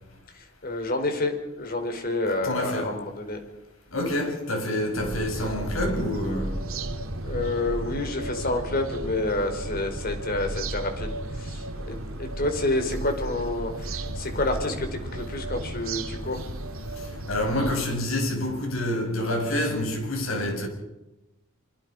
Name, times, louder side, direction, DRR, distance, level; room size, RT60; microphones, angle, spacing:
voice 1, 0.3-3.4 7.2-16.4, left 2 dB, 45° left, 4.5 m, -29 dB
voice 2, 2.2-3.0 3.9-6.6 16.9-20.7, left 1 dB, 80° left, 7.3 m, -27 dB
sound 1, 5.0-17.8, right 1 dB, 90° right, 2.6 m, -34 dB
25.5 x 25.0 x 5.5 m
head